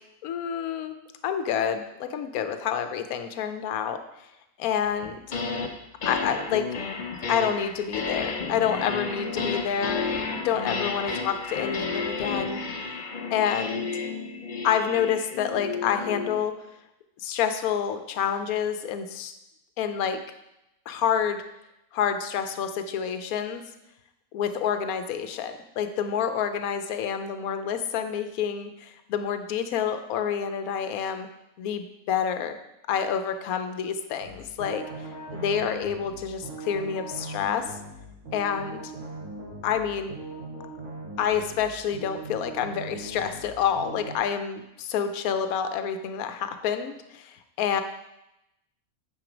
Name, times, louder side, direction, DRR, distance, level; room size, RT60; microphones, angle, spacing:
voice 1, 0.2-0.9 1.2-4.3 4.6-5.2 6.0-6.6 7.3-10.1 10.4-12.6 13.3-13.9 14.6-16.5 17.2-19.3 19.8-20.2 20.9-21.4 21.9-23.6 24.3-31.3 31.6-32.6 32.9-34.8 35.3-37.6 38.3-38.9 39.6-40.1 41.2-47.8, left 8 dB, 80° left, 8 dB, 1.1 m, -28 dB
sound 1, 5.0-5.7 6.0-16.4, left 4 dB, 45° left, 0.7 m, -32 dB
sound 2, 34.2-44.2, right 2 dB, 70° right, 2.3 m, -40 dB
9.1 x 4.5 x 5.0 m, 0.87 s
omnidirectional pair, 1.5 m